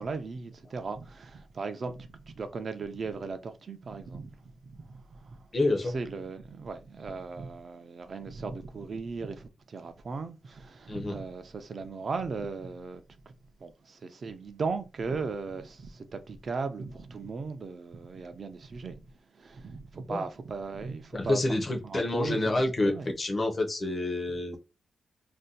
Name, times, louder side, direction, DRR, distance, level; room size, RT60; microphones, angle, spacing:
voice 1, 0.0-5.5 5.9-13.3 13.6-19.1 19.3-21.4 21.8-23.1, right 4 dB, 40° right, 0.4 m, -37 dB
voice 2, 5.5-5.9 10.9-11.2 20.1-20.2 21.1-22.9 23.2-24.6, left 2 dB, 30° left, 0.6 m, -28 dB
2.5 x 2.1 x 3.7 m
wide cardioid pair, 170°, 0 cm